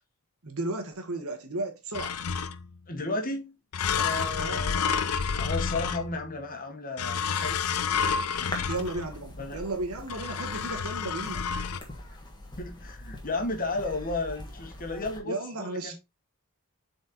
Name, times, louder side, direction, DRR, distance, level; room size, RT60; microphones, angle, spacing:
voice 1, 0.4-2.2 4.4-4.6 8.7-11.4 15.2-15.9, right 2 dB, 70° right, 1.5 m, -34 dB
sound 1, 1.9-2.8 3.7-6.4 7.0-9.2 10.1-11.8, left 6 dB, 85° left, 0.5 m, -30 dB
voice 2, 2.9-3.5 3.9-5.1 5.4-7.6 8.4-8.7 9.4-9.6 12.1-12.2 12.6-15.9, left 2 dB, 40° left, 1.6 m, -34 dB
sound 2, 8.3-15.2, left 1 dB, 20° left, 1.4 m, -43 dB
7.4 x 4.4 x 2.9 m
head